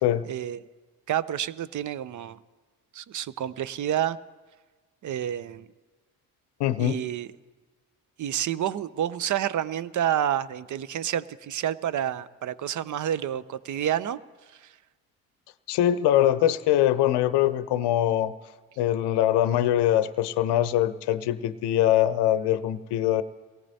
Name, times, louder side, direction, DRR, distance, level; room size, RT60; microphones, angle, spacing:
voice 1, 0.3-0.6 1.1-2.4 2.9-4.2 5.0-5.7 6.8-7.3 8.2-14.2 14.6-14.7, right 10 dB, 40° right, 17 dB, 0.6 m, -29 dB
voice 2, 6.6-7.0 15.7-18.3 18.8-23.2, left 12 dB, 60° left, 14 dB, 0.7 m, -23 dB
23.0 x 17.5 x 2.8 m, 1.4 s
hypercardioid pair, 45°, 45 cm